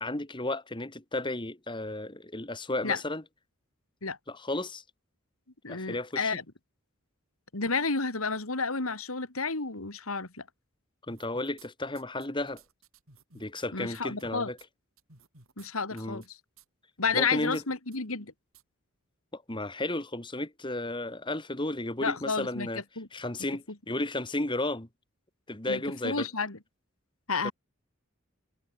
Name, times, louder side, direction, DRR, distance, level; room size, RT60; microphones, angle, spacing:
voice 1, 0.0-3.2 4.3-4.8 5.7-6.4 11.1-12.6 13.3-14.6 15.9-16.2 17.1-17.6 19.3-22.8 23.1-24.9 25.5-26.3 27.4-27.5, left 2 dB, 20° left, 1.9 m, -33 dB
voice 2, 5.6-6.4 7.5-10.4 13.7-14.5 15.6-16.4 17.0-18.3 22.0-22.7 23.0-23.1 25.7-26.6 27.3-27.5, left 4 dB, 80° left, 2.9 m, -31 dB
sound 1, 11.1-11.7 11.9-13.7 13.9-14.2 14.6-14.7 15.0-15.7 16.0-16.3 16.6-16.7 17.1-17.6 17.9-18.0 18.5-18.6, right 5 dB, 75° right, 7.3 m, -56 dB
head